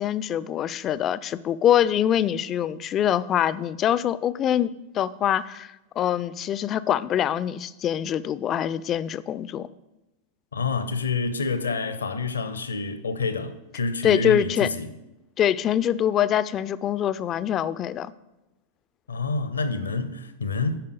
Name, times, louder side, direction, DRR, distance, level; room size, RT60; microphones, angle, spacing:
voice 1, 0.0-9.7 14.0-14.7 15.4-18.1, left 10 dB, 30° left, 0.3 m, -24 dB
voice 2, 10.5-14.9 19.1-20.8, left 4 dB, 75° left, 0.6 m, -28 dB
8.9 x 5.4 x 5.1 m
figure-of-eight pair, 90°, 0 cm